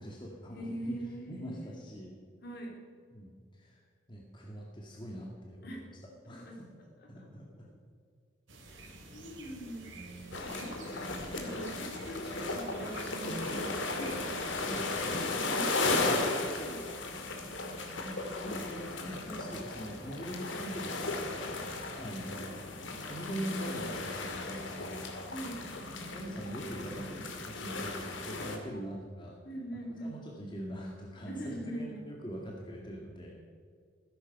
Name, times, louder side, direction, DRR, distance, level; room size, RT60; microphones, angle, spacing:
voice 1, 0.0-0.8 1.3-2.1 3.1-3.8 4.1-5.9 6.2-6.5 7.1-7.7 9.2-9.3 10.6-10.7 14.6-15.2 17.7-21.7 22.0-22.5 23.1-25.1 26.0-29.4 30.0-33.4, equal, 25° left, -1 dB, 1.9 m, -43 dB
voice 2, 0.5-1.8 2.4-2.8 5.6-5.8 6.2-6.6 7.2-7.3 8.7-8.9 9.1-14.3 15.5-16.9 25.3-25.6 28.7-28.8 29.4-30.2 31.3-32.0, right 1 dB, 55° left, 0 dB, 3.8 m, -43 dB
sound 1, 8.5-15.1, right 2 dB, 80° right, 3.1 m, -50 dB
sound 2, 10.3-28.6, left 2 dB, 75° left, 2.4 m, -36 dB
16.0 x 13.5 x 5.4 m, 2.1 s
head